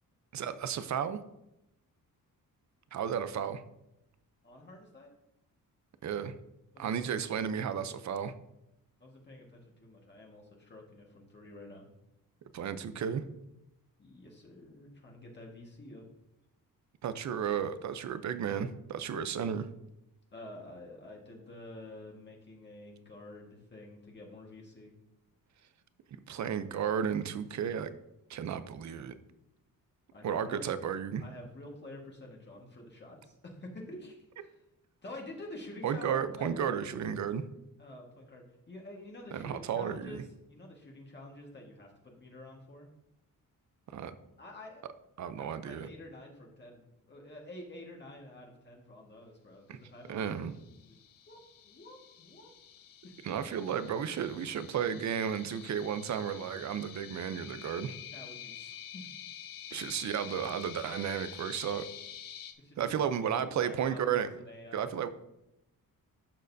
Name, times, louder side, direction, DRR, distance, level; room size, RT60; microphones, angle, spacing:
voice 1, 0.3-1.2 2.9-3.6 6.0-6.3 6.8-8.3 12.5-13.3 17.0-19.7 26.3-27.9 28.3-29.1 30.2-31.2 35.8-37.4 39.3-40.2 43.9-44.2 45.2-45.9 49.7-49.8 50.1-50.6 53.2-57.9 59.7-61.9 62.8-64.3 64.7-65.1, right 8 dB, 55° right, 12 dB, 0.6 m, -33 dB
voice 2, 4.4-5.2 6.7-7.1 9.0-11.9 14.0-16.1 20.3-24.9 30.1-30.6 31.2-34.6 35.0-36.8 37.8-42.9 44.4-44.8 45.4-50.4 50.8-51.0 51.3-51.4 51.6-52.5 53.0-53.1 58.1-59.1 62.6-62.9 63.4-64.9, left 1 dB, 30° left, -1 dB, 1.5 m, -49 dB
sound 1, 50.4-62.5, left 9 dB, 70° left, 0.8 m, -48 dB
11.5 x 6.5 x 2.7 m, 0.87 s
cardioid pair, 125°, 34 cm